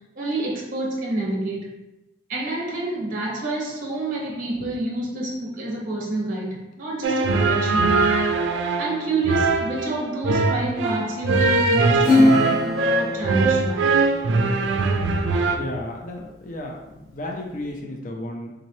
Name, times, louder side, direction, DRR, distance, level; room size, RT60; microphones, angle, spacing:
voice 1, 0.2-1.7 2.3-8.2 8.8-13.9, right 2 dB, 45° right, -2 dB, 0.8 m, -28 dB
sound 1, 7.0-15.6, right 3 dB, 70° right, 0.4 m, -21 dB
Acoustic guitar / Strum, 12.0-14.9, left 2 dB, 20° left, 1.2 m, -22 dB
voice 2, 15.5-18.5, left 1 dB, 45° left, 0 dB, 0.5 m, -33 dB
3.8 x 3.1 x 2.8 m, 0.96 s
head